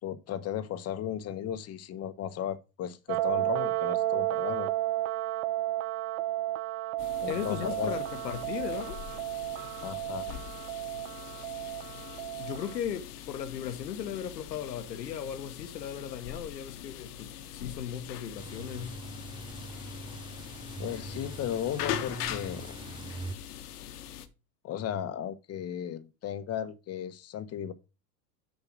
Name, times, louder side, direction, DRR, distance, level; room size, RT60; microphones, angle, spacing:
voice 1, 0.0-4.7 7.2-8.0 9.8-10.3 20.8-22.7 24.6-27.7, left 10 dB, 30° left, 1.1 m, -35 dB
sound 1, 3.1-12.8, right 15 dB, 50° right, 0.9 m, -32 dB
sound 2, 7.0-24.3, left 11 dB, 70° left, 1.4 m, -42 dB
voice 2, 7.3-9.0 12.4-19.0, left 9 dB, 90° left, 1.5 m, -37 dB
sound 3, 18.4-23.3, right 3 dB, 10° right, 0.7 m, -43 dB
7.0 x 5.5 x 6.2 m
hypercardioid pair, 115°, 49 cm